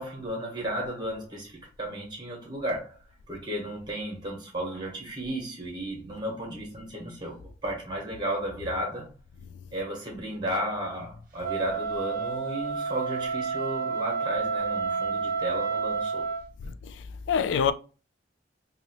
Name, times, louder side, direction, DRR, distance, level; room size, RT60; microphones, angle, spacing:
voice 1, 0.0-3.0 3.3-9.1 9.7-16.3, right 1 dB, 25° right, 1.2 m, -34 dB
Wind instrument woodwind instrument, 11.4-16.4, right 5 dB, 50° right, 0.8 m, -30 dB
voice 2, 16.6-17.7, left 7 dB, 90° left, 0.3 m, -27 dB
2.9 x 2.9 x 2.9 m
head